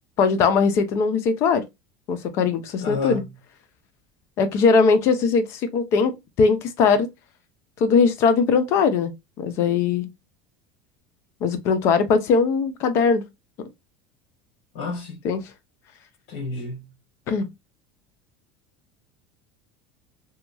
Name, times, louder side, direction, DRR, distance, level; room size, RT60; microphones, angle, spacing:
voice 1, 0.2-1.6 2.1-3.2 4.4-7.1 7.8-10.1 11.4-13.2 13.6-13.7 15.2-15.4 17.3-17.5, left 5 dB, 45° left, 0.5 m, -20 dB
voice 2, 2.8-3.4 14.7-15.2 16.3-16.9, left 4 dB, 70° left, 1.1 m, -30 dB
2.9 x 2.3 x 2.4 m
supercardioid pair, 140°, 6 cm